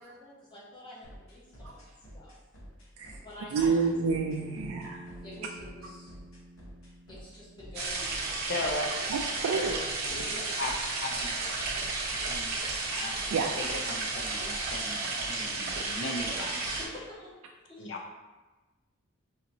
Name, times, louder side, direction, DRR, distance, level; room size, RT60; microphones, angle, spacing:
voice 1, 0.0-2.3 3.2-3.8 5.2-6.2 7.1-9.0 10.3-10.6 16.0-17.3 17.7-18.1, left 1 dB, 20° left, -7 dB, 1.1 m, -47 dB
sound 1, 1.0-17.0, equal, 85° left, 1.1 m, -49 dB
voice 2, 3.5-5.0 9.1-9.8 13.3-13.6, right 5 dB, 85° right, 1 dB, 0.3 m, -28 dB
Bass guitar, 3.8-8.1, right 1 dB, ahead, 0.9 m, -48 dB
sound 2, 7.7-16.8, right 3 dB, 50° right, 0.8 m, -33 dB
voice 3, 8.5-8.9 9.5-9.8 10.0-10.3 10.6-12.6 12.9-13.2 13.6-16.7 17.8-18.0, left 2 dB, 60° left, 0 dB, 0.5 m, -38 dB
4.9 x 2.9 x 2.6 m, 1.2 s
head